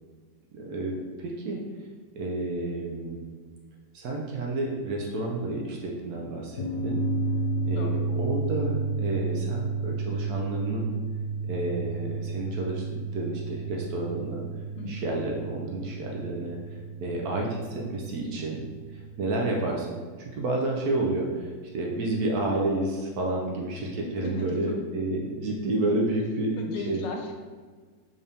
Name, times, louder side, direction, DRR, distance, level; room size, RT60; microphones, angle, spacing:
voice 1, 0.5-1.6 2.2-3.2 3.9-7.0 7.7-10.9 11.5-14.4 14.8-16.6 17.0-18.6 18.9-27.0, right 2 dB, 70° right, -1 dB, 1.0 m, -30 dB
sound 1, 6.6-19.5, right 3 dB, 65° left, 1.2 m, -32 dB
voice 2, 24.2-24.8 26.6-27.3, left 2 dB, 80° left, 2 dB, 1.3 m, -36 dB
3.7 x 3.4 x 2.7 m, 1.5 s
omnidirectional pair, 1.9 m